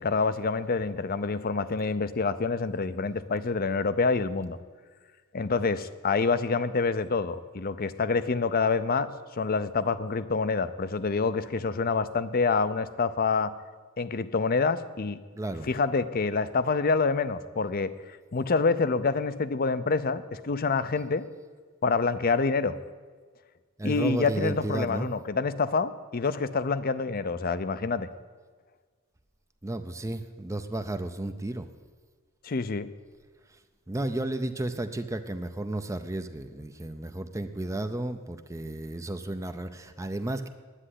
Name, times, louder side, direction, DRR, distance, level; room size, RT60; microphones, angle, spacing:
voice 1, 0.0-4.6 5.3-9.1 9.4-13.5 14.0-15.2 15.7-17.9 18.3-21.2 21.8-22.8 23.8-28.1 32.4-32.9, left 4 dB, 40° left, 13 dB, 0.6 m, -27 dB
voice 2, 15.3-15.7 23.8-25.1 29.6-31.7 33.5-33.6 33.9-40.5, right 1 dB, 15° right, 8 dB, 0.5 m, -33 dB
9.9 x 8.8 x 10.0 m, 1.5 s
head